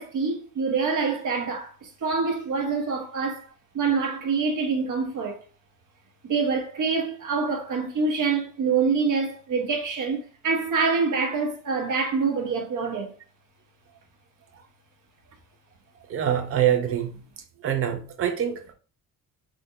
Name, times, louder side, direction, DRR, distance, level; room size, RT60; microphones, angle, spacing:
voice 1, 0.0-3.5 3.7-5.4 6.2-13.1, right 5 dB, 60° right, 1.1 m, -26 dB
voice 2, 16.1-17.2 17.6-18.7, right 10 dB, 40° right, 0.6 m, -25 dB
3.6 x 3.3 x 2.8 m
wide cardioid pair, 160°, 35 cm